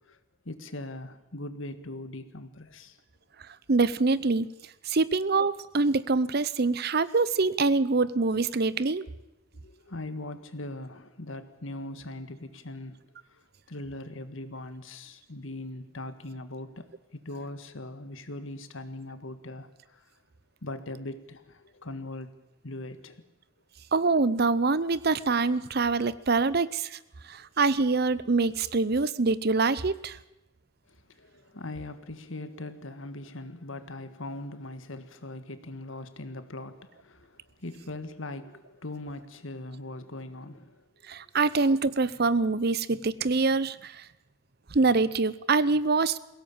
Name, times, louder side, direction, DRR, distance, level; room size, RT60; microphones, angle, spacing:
voice 1, 0.5-3.0 9.5-13.0 13.3-20.1 20.6-22.4 22.6-23.3 30.9-40.8, left 2 dB, 75° left, 1.7 m, -40 dB
voice 2, 3.7-4.5 4.8-9.0 23.9-27.0 27.2-30.2 41.1-44.0 44.7-46.2, right 3 dB, 50° right, 0.7 m, -25 dB
22.0 x 17.0 x 8.8 m
head